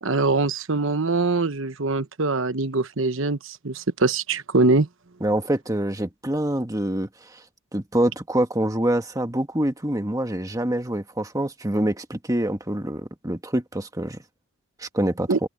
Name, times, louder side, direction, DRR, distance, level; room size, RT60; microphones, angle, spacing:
voice 1, 0.0-4.9 15.3-15.4, right 3 dB, 60° right, 1.1 m, -23 dB
voice 2, 5.2-7.4 7.7-14.2 14.8-15.3, right 1 dB, 15° right, 1.4 m, -25 dB
head